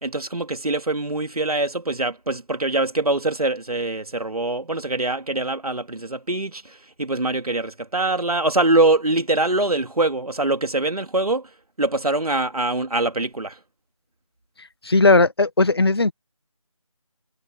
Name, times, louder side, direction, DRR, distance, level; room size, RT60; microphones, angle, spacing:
voice 1, 0.0-11.5 11.8-13.6, right 2 dB, 85° right, 2.5 m, -23 dB
voice 2, 14.8-16.1, left 3 dB, 45° left, 1.6 m, -17 dB
figure-of-eight pair, 170°, 19 cm